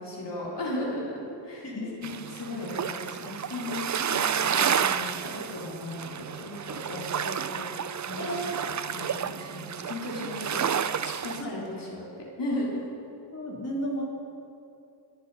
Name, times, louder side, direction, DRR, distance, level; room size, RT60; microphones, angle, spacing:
voice 1, 0.0-7.7 8.0-12.8, left 1 dB, 65° left, -4 dB, 3.6 m, -36 dB
sound 1, 2.0-11.4, right 8 dB, 40° right, 0.5 m, -30 dB
voice 2, 8.2-8.5 11.4-11.5 13.3-14.0, equal, 35° left, -4 dB, 3.3 m, -33 dB
24.0 x 8.1 x 5.5 m, 2.7 s
wide cardioid pair, 75°, 45 cm